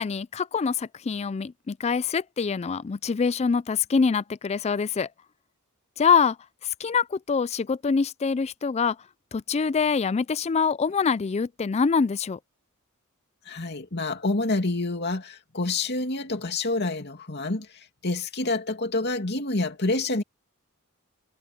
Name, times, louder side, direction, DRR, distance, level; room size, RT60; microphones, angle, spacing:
voice 1, 0.0-5.1 6.0-6.4 6.6-9.0 9.3-12.4, left 5 dB, 30° left, 0.3 m, -25 dB
voice 2, 13.4-20.2, left 2 dB, 50° left, 2.6 m, -28 dB
head